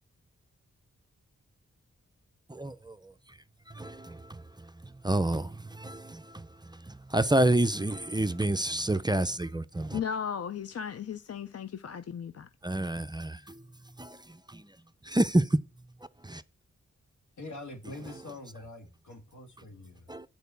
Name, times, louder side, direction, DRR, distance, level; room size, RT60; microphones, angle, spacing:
voice 1, 3.8-4.1 5.0-5.5 5.8-6.2 7.1-9.9 12.6-13.4 14.0-14.1 15.1-15.4 16.3-16.4 20.1-20.2, right 1 dB, 15° right, 0.6 m, -27 dB
voice 2, 9.9-12.5, left 7 dB, 55° left, 0.6 m, -36 dB
voice 3, 17.4-20.1, left 2 dB, 85° left, 2.0 m, -44 dB
9.3 x 4.6 x 6.8 m
cardioid pair, 60°, 29 cm